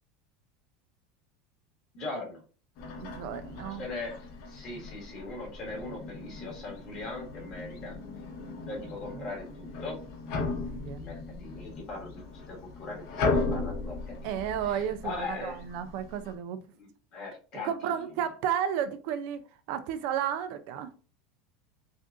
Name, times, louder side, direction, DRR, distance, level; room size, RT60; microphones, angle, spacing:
voice 1, 1.9-2.4 3.7-4.2 4.5-8.0 8.7-10.0 11.0-14.2 14.6-15.7 16.7-18.1, left 3 dB, 30° left, 1.9 m, -40 dB
sound 1, 2.8-16.4, left 3 dB, 50° left, 0.9 m, -37 dB
voice 2, 3.0-3.8 9.2-9.3 10.5-11.1 14.2-16.6 17.6-19.4 19.7-20.9, right 9 dB, 50° right, 0.4 m, -33 dB
6.1 x 2.5 x 2.5 m
supercardioid pair, 170°, 2 cm